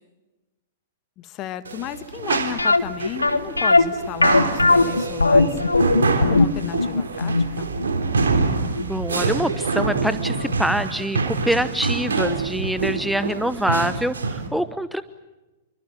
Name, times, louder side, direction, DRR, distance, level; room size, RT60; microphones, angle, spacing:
voice 1, 1.2-5.6 6.1-7.7, left 12 dB, 35° left, 12 dB, 1.6 m, -34 dB
sound 1, 1.6-14.5, right 4 dB, 70° right, 3.0 m, -26 dB
sound 2, 2.6-9.4 9.7-9.8 10.4-10.5 10.8-10.9, left 3 dB, 85° left, 1.5 m, -19 dB
voice 2, 8.8-15.0, equal, ahead, 13 dB, 1.0 m, -25 dB
28.5 x 24.0 x 7.8 m, 1.1 s
figure-of-eight pair, 105°, 0 cm